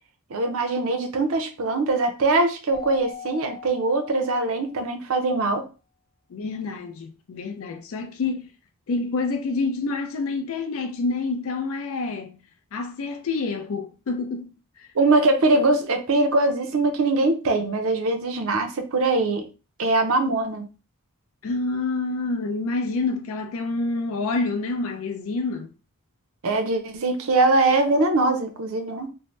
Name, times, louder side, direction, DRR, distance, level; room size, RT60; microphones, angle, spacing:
voice 1, 0.3-5.6 15.0-19.5 19.8-20.7 26.4-29.1, right 2 dB, 65° right, 0.6 m, -22 dB
Keyboard (musical), 2.7-5.0, left 7 dB, 50° left, 0.8 m, -40 dB
voice 2, 6.3-8.5 8.9-12.4 12.7-14.5 14.8-14.9 21.4-25.7, left 3 dB, 65° left, 0.4 m, -27 dB
2.6 x 2.0 x 3.1 m
head